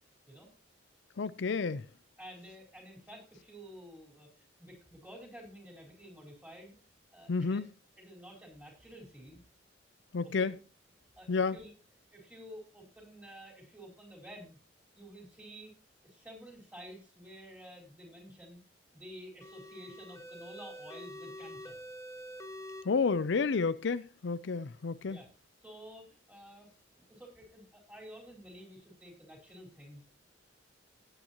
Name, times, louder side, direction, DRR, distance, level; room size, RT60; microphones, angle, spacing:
voice 1, 1.2-1.9 7.3-7.7 10.1-10.6 11.3-11.6 22.8-25.2, left 4 dB, 65° left, 0.5 m, -30 dB
voice 2, 2.2-6.8 7.1-7.7 8.0-9.4 10.2-10.5 11.2-11.7 12.1-14.6 14.9-15.7 16.0-18.6 18.9-21.8 25.0-25.3 25.6-26.7 27.0-30.1, equal, 10° right, 4.4 m, -51 dB
sound 1, 19.4-22.8, equal, 15° left, 0.7 m, -46 dB
18.0 x 9.0 x 2.9 m
head